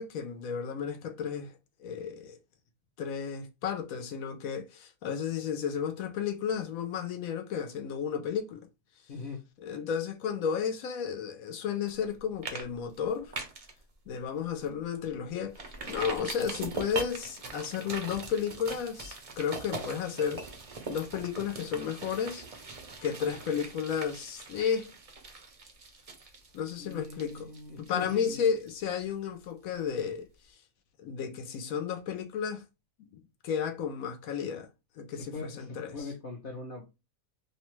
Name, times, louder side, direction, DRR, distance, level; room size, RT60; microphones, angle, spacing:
voice 1, 0.0-1.5 1.8-2.4 3.0-8.7 9.6-13.3 14.1-20.5 20.9-22.4 23.0-24.9 26.5-30.2 31.0-32.6 33.0-34.7 35.0-36.0, left 7 dB, 80° left, 1.0 m, -33 dB
voice 2, 9.1-9.4 26.8-28.4 35.2-36.8, left 4 dB, 55° left, 0.6 m, -41 dB
sound 1, 11.9-12.1 12.4-12.6 12.9-13.7 14.1-14.2 14.6-14.7 15.5-29.1 29.4-29.5, right 4 dB, 50° right, 0.4 m, -41 dB
2.7 x 2.2 x 2.9 m
omnidirectional pair, 1.5 m